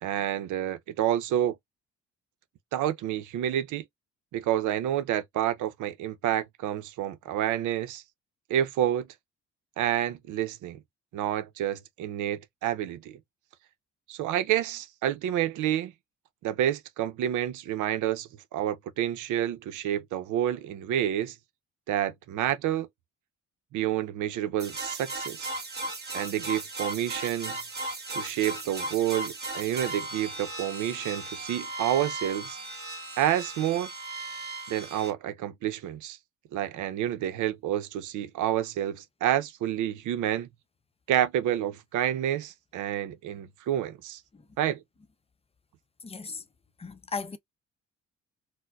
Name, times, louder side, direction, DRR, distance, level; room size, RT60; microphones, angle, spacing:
voice 1, 0.0-1.6 2.7-3.8 4.3-8.0 8.5-9.1 9.8-10.8 11.1-13.2 14.1-15.9 16.4-21.4 21.9-22.9 23.7-25.5 26.1-27.6 28.1-32.6 33.2-33.9 34.7-36.2 36.5-40.5 41.1-44.2 44.6-44.8, right 11 dB, 85° right, 0.6 m, -29 dB
sound 1, 24.6-35.1, right 2 dB, 35° right, 1.8 m, -36 dB
voice 2, 46.0-46.4 46.8-47.4, left 4 dB, 20° left, 0.5 m, -36 dB
4.3 x 2.1 x 2.3 m
cardioid pair, 90°, 30 cm